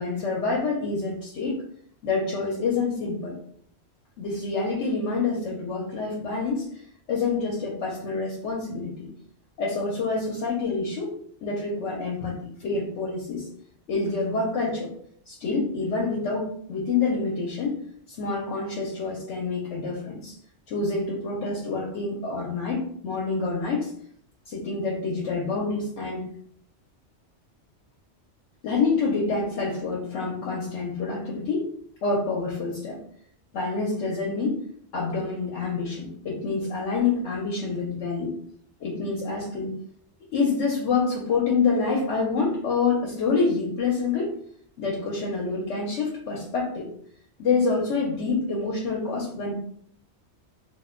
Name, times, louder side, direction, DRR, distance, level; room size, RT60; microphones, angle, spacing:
voice 1, 0.0-1.6 2.0-3.3 4.2-6.7 7.1-9.1 9.6-11.1 11.4-13.5 13.9-14.9 15.3-17.8 18.1-20.4 20.7-23.9 24.5-26.2 28.6-31.7 32.0-33.0 33.5-34.6 34.9-38.3 38.8-39.7 40.3-44.3 44.8-46.9 47.4-49.5, left 4 dB, 80° left, -3 dB, 0.9 m, -27 dB
2.4 x 2.1 x 3.6 m, 0.64 s
omnidirectional pair, 1.2 m